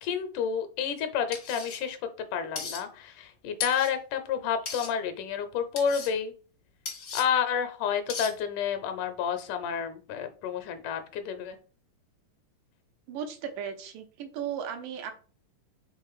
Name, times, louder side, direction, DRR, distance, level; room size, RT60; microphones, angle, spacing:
voice 1, 0.0-2.0 2.3-6.3 7.1-11.6, left 7 dB, 75° left, 8 dB, 2.2 m, -30 dB
sound 1, 1.3-1.8 2.6-2.8 3.6-3.9 4.7-4.9 5.8-6.1 6.9-7.2 8.1-8.3, left 5 dB, 50° left, 1.0 m, -36 dB
voice 2, 13.1-15.1, right 8 dB, 85° right, 6 dB, 2.6 m, -36 dB
5.7 x 3.8 x 4.8 m, 0.38 s
omnidirectional pair, 3.8 m